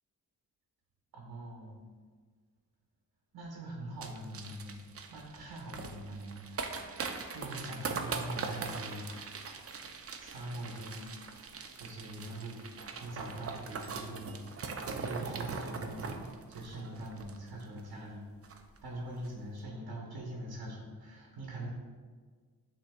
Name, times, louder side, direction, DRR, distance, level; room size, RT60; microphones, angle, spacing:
voice 1, 1.1-1.9 3.3-4.8 5.1-9.5 10.2-11.1 11.7-18.3 18.8-21.7, right 1 dB, 60° right, -1 dB, 0.9 m, -43 dB
sound 1, 4.0-17.8 18.1-18.2 18.4-18.8 19.1-19.3, right 5 dB, 35° right, 0.5 m, -41 dB
7.6 x 2.9 x 2.2 m, 1.5 s
cardioid pair, 55°, 42 cm